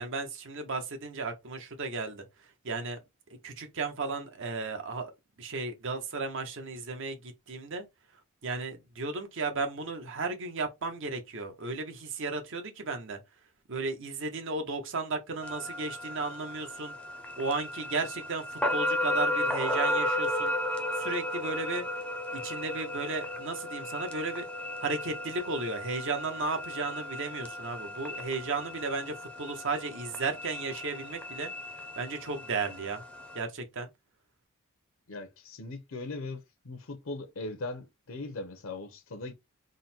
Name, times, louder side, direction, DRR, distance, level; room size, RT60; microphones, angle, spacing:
voice 1, 0.0-2.2 2.6-3.0 3.4-5.1 5.4-7.9 8.4-13.2 13.7-16.9 17.4-20.5 21.0-21.8 22.3-24.5 24.8-31.5 32.0-33.0 33.3-33.9, right 3 dB, 60° right, 0.9 m, -34 dB
sound 1, 15.4-33.4, left 1 dB, 5° left, 0.6 m, -34 dB
voice 2, 35.1-39.3, left 2 dB, 60° left, 0.7 m, -39 dB
3.8 x 2.1 x 4.2 m
head